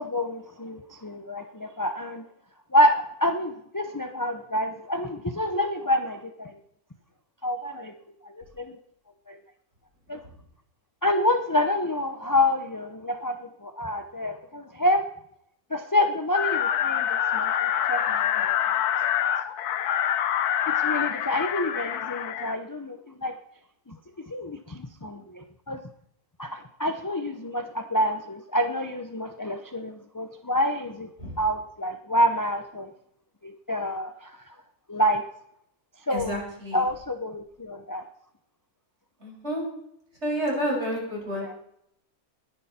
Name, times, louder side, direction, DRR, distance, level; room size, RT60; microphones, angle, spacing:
voice 1, 0.0-2.2 2.7-6.6 7.4-7.9 8.2-8.8 9.3-9.4 10.1-10.2 11.0-15.0 15.7-18.5 20.7-23.3 23.9-24.0 24.3-25.8 26.4-31.1 31.4-32.9 33.4-34.3 34.9-35.2 36.1-36.4 36.7-38.0 41.4-41.6, left 1 dB, 20° left, 7 dB, 0.6 m, -27 dB
sound 1, 16.3-22.5, left 10 dB, 85° left, 1.3 m, -26 dB
voice 2, 36.1-36.8 39.2-39.6 40.2-41.5, equal, 45° right, -2 dB, 6.2 m, -29 dB
20.5 x 10.5 x 4.3 m, 0.73 s
omnidirectional pair, 1.6 m